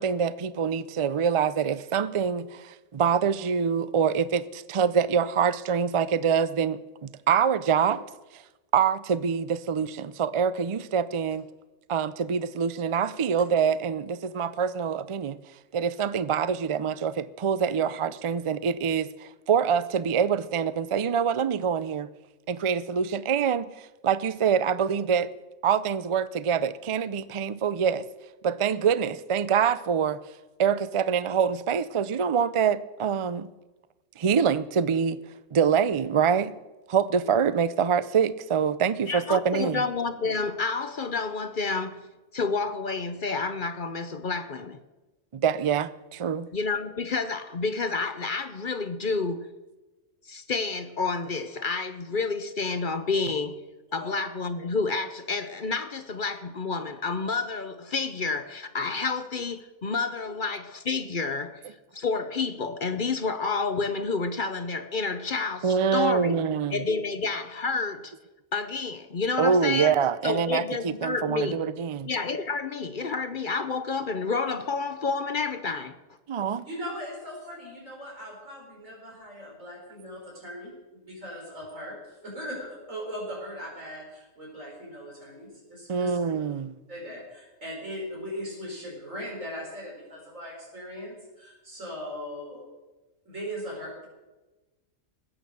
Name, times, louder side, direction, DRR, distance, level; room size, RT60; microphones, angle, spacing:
voice 1, 0.0-8.1 8.3-8.4 8.7-11.4 11.9-15.4 15.7-22.1 22.5-25.3 25.6-28.1 28.4-30.2 30.6-33.5 34.2-35.2 35.5-36.5 36.9-39.8 45.3-46.5 65.6-66.8 69.4-72.1 76.3-76.6 85.9-86.8, right 7 dB, 55° right, 0.3 m, -25 dB
voice 2, 39.1-42.1 42.3-44.8 46.5-49.5 50.3-53.6 53.9-66.4 66.7-68.1 68.5-69.9 70.2-71.6 72.0-76.0, left 4 dB, 45° left, 0.8 m, -29 dB
voice 3, 76.6-82.0 82.2-86.2 86.9-92.6 93.3-94.1, equal, 90° right, 5.9 m, -39 dB
20.5 x 9.0 x 6.8 m
omnidirectional pair, 1.3 m